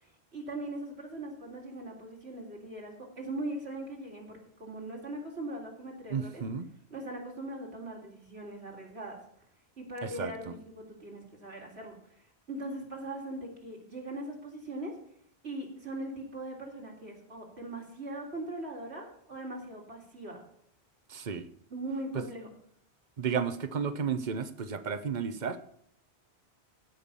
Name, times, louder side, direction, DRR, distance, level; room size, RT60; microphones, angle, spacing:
voice 1, 0.0-6.4 6.9-9.2 9.8-12.0 12.5-15.0 15.4-20.4 21.7-22.5, right 1 dB, 75° right, 0 dB, 3.7 m, -40 dB
voice 2, 6.1-6.7 10.0-10.5 21.1-21.5 23.2-25.7, right 6 dB, 45° right, 12 dB, 1.1 m, -33 dB
15.5 x 5.8 x 7.0 m, 0.69 s
omnidirectional pair, 1.1 m